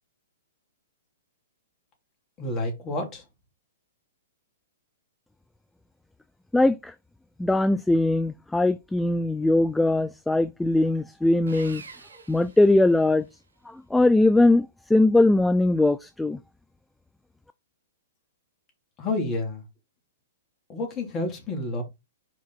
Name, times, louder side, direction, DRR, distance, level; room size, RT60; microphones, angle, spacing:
voice 1, 2.4-3.2 19.0-19.6 20.7-21.8, left 2 dB, 25° left, 3.3 m, -29 dB
voice 2, 6.5-6.9 7.4-11.8 12.3-13.2 13.7-16.4, left 2 dB, 5° left, 0.3 m, -21 dB
Sawing, 11.5-13.4, right 4 dB, 75° right, 1.3 m, -46 dB
5.2 x 5.0 x 4.1 m
figure-of-eight pair, 110°, 0 cm